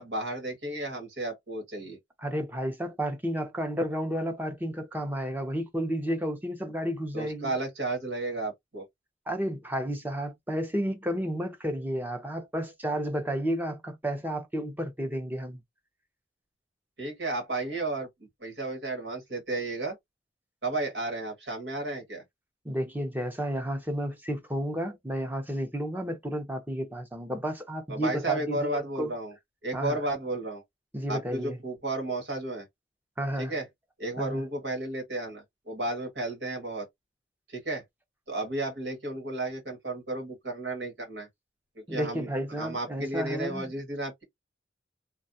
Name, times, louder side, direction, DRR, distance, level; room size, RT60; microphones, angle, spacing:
voice 1, 0.0-2.0 7.1-8.9 17.0-18.1 18.4-20.0 20.6-22.2 27.9-29.3 29.6-30.6 31.1-32.7 33.4-33.6 34.0-36.9 37.5-37.8 38.3-41.3 41.9-42.3 42.6-44.2, right 2 dB, 80° right, 1.6 m, -33 dB
voice 2, 2.2-7.5 9.3-15.6 22.6-29.1 29.7-30.0 30.9-31.6 33.2-33.5 34.2-34.4 41.9-43.7, equal, 10° right, 0.7 m, -32 dB
3.2 x 2.3 x 2.7 m
head